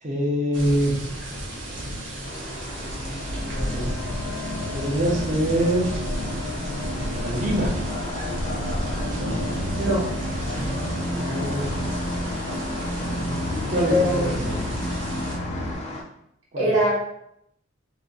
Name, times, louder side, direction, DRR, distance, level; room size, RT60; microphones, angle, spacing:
voice 1, 0.0-1.0 2.8-3.9 4.7-5.9 7.2-7.8 11.0-11.7 12.9-14.8 16.5-16.7, right 1 dB, 40° right, -1 dB, 0.8 m, -26 dB
sound 1, 0.5-15.4, equal, 65° right, 0.9 m, -33 dB
sound 2, 2.2-16.0, left 2 dB, 35° left, 0.6 m, -35 dB
sound 3, 2.8-15.7, left 1 dB, 85° left, 0.7 m, -32 dB
voice 2, 9.8-10.1 10.5-10.7 11.2-11.4 13.9-14.4 16.6-16.9, equal, 90° right, -7 dB, 1.3 m, -23 dB
2.8 x 2.6 x 3.8 m, 0.76 s
head